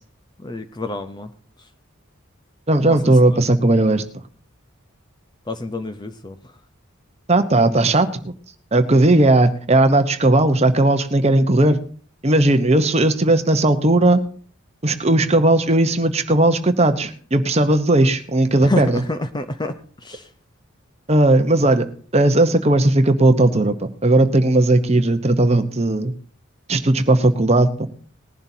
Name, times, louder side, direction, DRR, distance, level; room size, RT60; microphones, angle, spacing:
voice 1, 0.4-1.3 2.9-3.4 5.5-6.4 18.6-20.3, left 1 dB, 20° left, 9 dB, 0.6 m, -28 dB
voice 2, 2.7-4.0 7.3-8.3 8.7-11.8 12.2-14.2 14.8-19.0 21.1-21.9 22.1-26.1 26.7-27.7, right 2 dB, 30° right, 9 dB, 0.9 m, -16 dB
19.5 x 11.0 x 2.7 m, 0.43 s
head